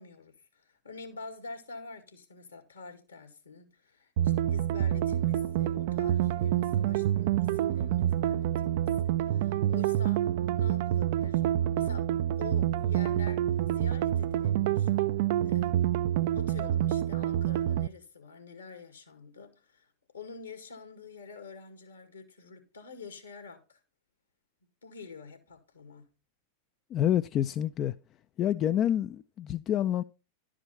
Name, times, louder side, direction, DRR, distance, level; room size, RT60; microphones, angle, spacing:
voice 1, 0.0-11.4 11.7-12.1 12.4-14.9 15.4-16.0 16.3-23.8 24.8-26.1, left 4 dB, 75° left, 2.1 m, -47 dB
sound 1, 4.2-17.9, right 12 dB, 50° right, 0.4 m, -27 dB
voice 2, 26.9-28.0 28.4-30.0, left 11 dB, 30° left, 0.4 m, -27 dB
11.5 x 5.0 x 5.4 m
figure-of-eight pair, 90°, 0 cm